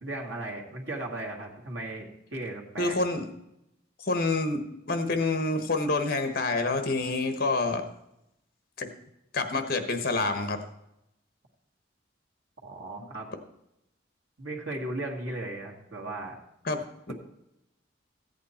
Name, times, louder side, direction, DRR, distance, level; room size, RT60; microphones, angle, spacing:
voice 1, 0.0-3.0 12.6-13.3 14.4-16.4, right 2 dB, 90° right, 0 dB, 1.8 m, -36 dB
voice 2, 2.8-3.3 4.0-7.8 8.8-8.9 9.3-10.6 16.6-17.1, left 3 dB, 50° left, 8 dB, 1.1 m, -28 dB
14.5 x 8.4 x 4.3 m, 0.84 s
head